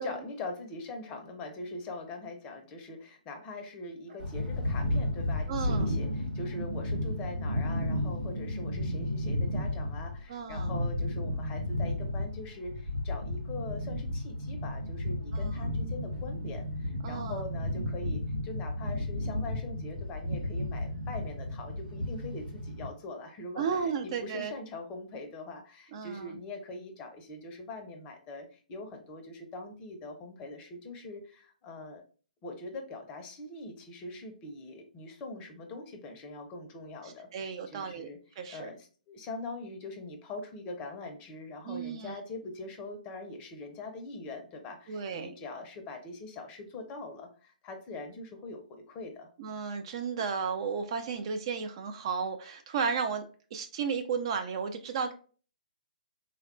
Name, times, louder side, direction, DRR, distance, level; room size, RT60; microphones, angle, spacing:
voice 1, 0.0-32.0 32.4-38.2 38.5-49.3, left 2 dB, 20° left, 5 dB, 0.5 m, -42 dB
sound 1, 4.2-22.9, left 1 dB, 85° right, 0.6 m, -33 dB
voice 2, 5.5-5.9 10.3-10.7 15.3-15.6 17.0-17.4 23.6-24.5 25.9-26.4 37.3-38.1 38.4-38.7 41.6-42.1 44.9-45.4 49.4-53.2 53.5-55.1, right 6 dB, 40° right, 7 dB, 0.3 m, -33 dB
3.4 x 2.2 x 2.3 m, 0.39 s
figure-of-eight pair, 130°, 5 cm